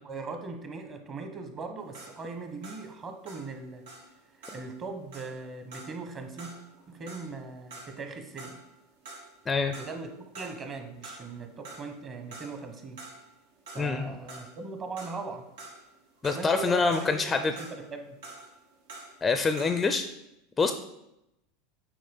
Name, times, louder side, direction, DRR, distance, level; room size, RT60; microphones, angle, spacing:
voice 1, 0.0-3.8 4.5-6.5 6.9-8.6 9.7-13.0 13.7-15.4 16.3-18.2, right 4 dB, 25° right, 6 dB, 1.1 m, -40 dB
sound 1, 1.8-8.8 9.1-10.1 10.3-11.4 11.6-20.0, right 3 dB, 85° right, 2.9 m, -48 dB
voice 2, 13.8-14.1 16.2-17.5 19.2-20.1 20.6-20.7, left 4 dB, 15° left, 9 dB, 0.4 m, -25 dB
7.6 x 4.7 x 5.4 m, 0.85 s
supercardioid pair, 145°, 0 cm